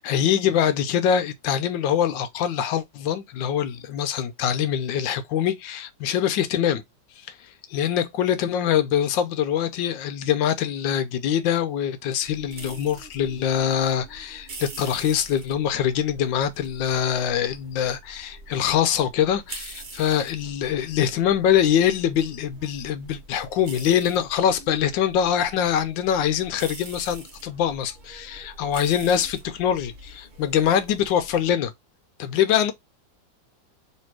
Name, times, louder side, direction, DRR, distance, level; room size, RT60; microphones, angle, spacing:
voice 1, 0.0-6.8 7.3-7.4 7.7-31.7 32.2-32.7, left 9 dB, 85° left, 1.3 m, -24 dB
sound 1, 12.2-31.5, right 3 dB, 35° right, 0.8 m, -44 dB
3.4 x 2.9 x 4.5 m
omnidirectional pair, 2.0 m